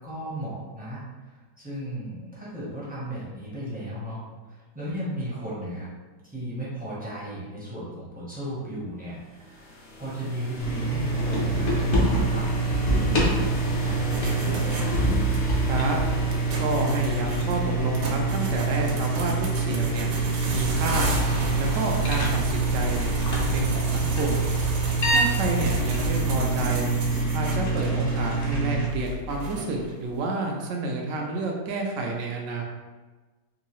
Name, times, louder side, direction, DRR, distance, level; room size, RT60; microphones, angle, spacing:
voice 1, 0.0-5.9 6.2-14.9 26.6-26.8, right 1 dB, 10° right, -8 dB, 0.5 m, -35 dB
sound 1, 9.2-19.1, left 1 dB, 80° left, 0.5 m, -38 dB
sound 2, 10.6-28.9, right 3 dB, 55° left, 0.8 m, -25 dB
sound 3, 14.1-30.0, right 1 dB, 90° right, 1.3 m, -32 dB
voice 2, 16.6-20.1 20.5-21.2 21.6-24.5 25.0-26.9 27.3-32.6, right 2 dB, 70° right, 1 dB, 0.7 m, -29 dB
3.8 x 2.6 x 3.0 m, 1.3 s
omnidirectional pair, 1.9 m